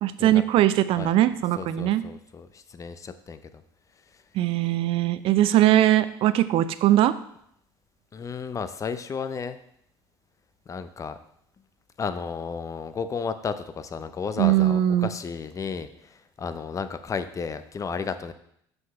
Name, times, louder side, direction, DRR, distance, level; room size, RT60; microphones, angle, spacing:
voice 1, 0.0-2.0 4.3-7.1 14.4-15.1, right 13 dB, 55° right, 13 dB, 0.5 m, -21 dB
voice 2, 1.6-3.6 4.1-4.2 8.1-9.6 10.7-11.2 12.0-18.3, left 5 dB, 30° left, 11 dB, 0.7 m, -33 dB
5.8 x 5.4 x 5.6 m, 0.72 s
hypercardioid pair, 80°, 11 cm